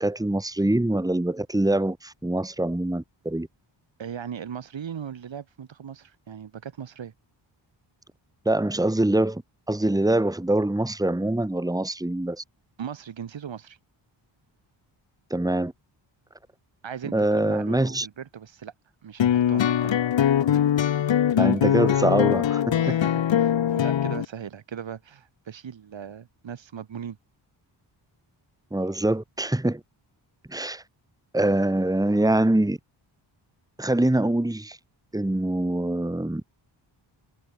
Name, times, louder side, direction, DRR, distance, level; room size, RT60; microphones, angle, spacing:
voice 1, 0.0-3.5 8.4-9.4 9.7-12.4 15.3-15.7 17.1-18.1 21.4-22.9 28.7-29.8 30.5-30.8 31.3-32.8 33.8-34.8 35.1-36.4, right 1 dB, 5° right, 3.4 m, -24 dB
voice 2, 4.0-7.1 12.8-13.8 16.8-18.7 19.0-19.9 22.8-27.2, right 8 dB, 65° right, 7.3 m, -38 dB
sound 1, 19.2-24.2, left 10 dB, 65° left, 1.7 m, -22 dB
wide cardioid pair, 160°, 48 cm